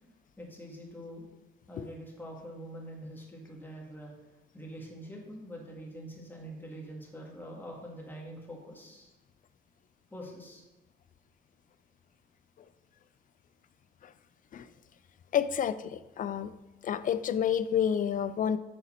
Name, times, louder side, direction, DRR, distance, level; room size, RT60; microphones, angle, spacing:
voice 1, 0.4-1.2 1.7-4.1 4.5-9.1 10.1-10.6, equal, 10° left, -2 dB, 1.7 m, -44 dB
voice 2, 15.3-16.5 16.8-18.6, left 8 dB, 45° left, 14 dB, 0.4 m, -29 dB
6.8 x 3.9 x 4.4 m, 1.0 s
cardioid pair, 90°, 20 cm